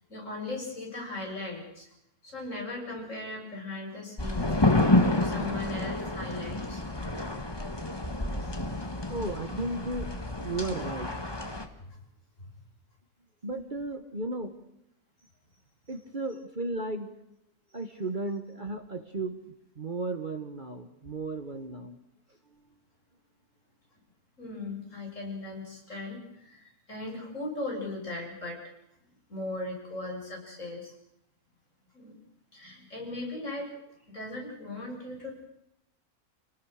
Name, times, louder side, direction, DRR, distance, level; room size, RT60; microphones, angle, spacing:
voice 1, 0.1-1.9 2.2-4.5 5.1-6.8 8.4-9.0 11.8-12.0 24.4-28.6 29.3-30.9 31.9-32.2 32.5-33.7 34.1-35.5, left 2 dB, 55° left, -1 dB, 7.9 m, -38 dB
sound 1, 4.2-11.7, left 2 dB, 15° left, 1.7 m, -29 dB
voice 2, 9.1-10.1 10.4-11.3 13.4-14.5 15.9-17.2 17.7-19.4 19.8-22.0, right 2 dB, 35° right, 8 dB, 1.4 m, -34 dB
28.0 x 19.0 x 6.5 m, 0.81 s
omnidirectional pair, 1.6 m